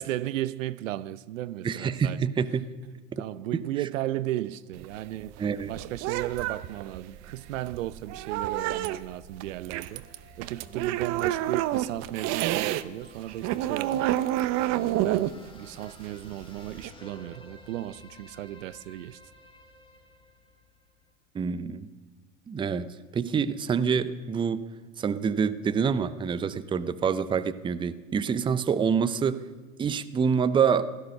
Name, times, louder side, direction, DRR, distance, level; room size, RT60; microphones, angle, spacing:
voice 1, 0.0-2.2 3.2-5.4 5.7-10.0 10.4-14.1 14.7-19.2, right 14 dB, 80° right, 0.7 m, -35 dB
voice 2, 1.6-2.7 5.4-5.7 21.3-21.9 22.5-24.7 25.0-29.5 29.8-30.9, right 6 dB, 15° right, 0.6 m, -26 dB
sound 1, 4.0-21.1, left 1 dB, 15° left, 2.7 m, -55 dB
sound 2, 4.7-12.8 13.2-16.9, right 14 dB, 45° right, 0.8 m, -29 dB
16.5 x 13.5 x 6.5 m
supercardioid pair, 120°, 38 cm